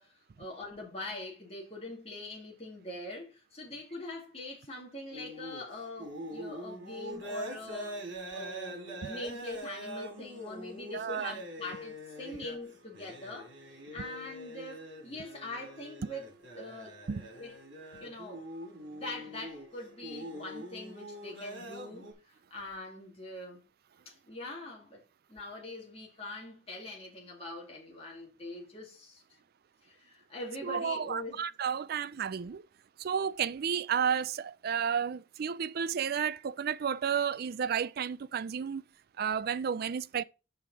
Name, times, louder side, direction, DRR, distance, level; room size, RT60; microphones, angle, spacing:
voice 1, 0.0-16.3 16.5-17.0 17.3-17.6 18.0-18.5 18.9-23.6 24.1-25.0 25.3-29.2 29.8-31.5, left 2 dB, 30° left, 2.2 m, -43 dB
sound 1, 5.1-22.1, equal, 75° right, 3.1 m, -44 dB
voice 2, 10.9-11.3 17.1-17.2 30.6-32.6 33.0-38.8 39.2-40.2, right 7 dB, 55° right, 0.4 m, -32 dB
6.6 x 5.8 x 4.6 m
head